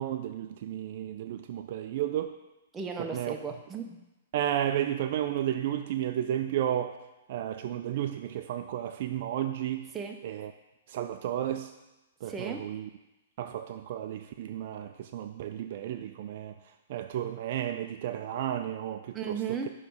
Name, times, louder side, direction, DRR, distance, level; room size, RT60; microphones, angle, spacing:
voice 1, 0.0-2.3 3.0-3.3 4.3-7.0 7.3-9.9 10.2-10.5 10.9-11.7 12.2-12.9 13.4-16.5 16.9-19.4, right 11 dB, 55° right, 8 dB, 0.3 m, -32 dB
voice 2, 2.7-4.0 9.9-10.2 12.2-12.6 19.1-19.7, right 6 dB, 15° right, 3 dB, 0.7 m, -35 dB
6.6 x 3.1 x 5.3 m, 1.0 s
hypercardioid pair, 145°, 0 cm